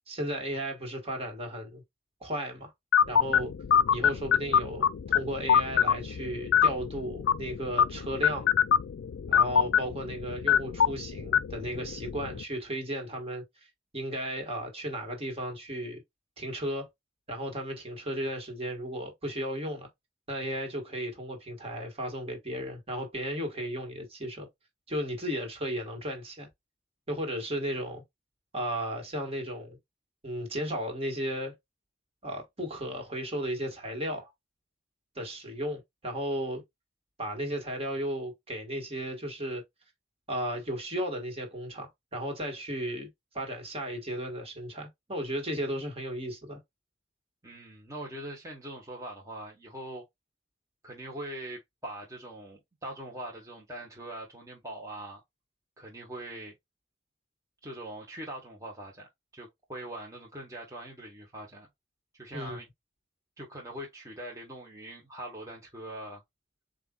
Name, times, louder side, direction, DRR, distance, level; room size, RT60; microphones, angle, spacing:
voice 1, 0.1-1.8 2.2-2.7 3.1-3.5 3.9-8.5 9.3-13.7 13.9-16.0 16.4-16.9 17.3-19.9 20.3-24.5 24.9-26.5 27.1-28.0 28.5-29.8 30.2-31.5 32.2-34.3 35.1-36.6 37.2-39.6 40.3-43.1 43.3-46.6 62.3-62.6, equal, 35° right, 1.6 m, -35 dB
sound 1, 2.9-12.4, left 8 dB, 90° left, 0.3 m, -26 dB
voice 2, 47.4-50.0 50.8-55.2 55.8-56.5 57.6-59.1 59.3-61.7 62.2-62.7 63.4-66.2, right 1 dB, 20° right, 1.1 m, -42 dB
7.6 x 2.5 x 2.3 m
head